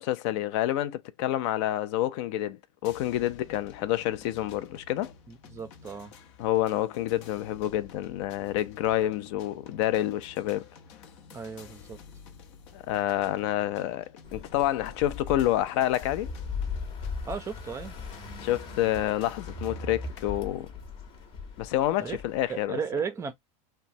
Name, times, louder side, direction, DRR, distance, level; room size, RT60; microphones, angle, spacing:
voice 1, 0.0-5.1 6.4-10.7 12.7-16.3 18.4-20.7 21.6-22.8, left 13 dB, 60° left, 0.4 m, -28 dB
sound 1, 2.8-20.3, left 6 dB, 75° left, 0.8 m, -51 dB
voice 2, 5.3-6.2 11.3-12.0 17.2-17.9 22.0-22.2 22.5-23.3, right 6 dB, 15° right, 0.4 m, -35 dB
sound 2, 14.2-22.6, left 4 dB, 35° left, 0.8 m, -39 dB
3.0 x 2.1 x 2.6 m
supercardioid pair, 140°, 16 cm